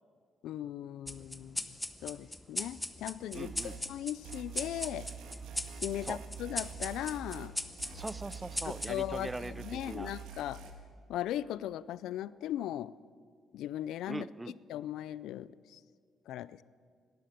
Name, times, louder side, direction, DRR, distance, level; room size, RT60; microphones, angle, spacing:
voice 1, 0.4-1.7 2.0-3.5 3.9-5.1 5.8-7.5 8.6-10.6 11.1-12.9 13.5-14.3 14.7-15.8 16.3-16.6, left 12 dB, 85° left, 19 dB, 0.4 m, -38 dB
sound 1, 1.1-10.0, left 1 dB, 10° left, 0.8 m, -41 dB
voice 2, 3.3-3.8 6.0-6.2 7.9-10.1 14.1-14.6, right 2 dB, 15° right, 19 dB, 0.4 m, -41 dB
sound 2, 3.3-3.8 4.2-7.5 7.8-10.7, right 6 dB, 85° right, 1.7 m, -46 dB
17.5 x 12.0 x 6.6 m, 2.1 s
cardioid pair, 90°, 0 cm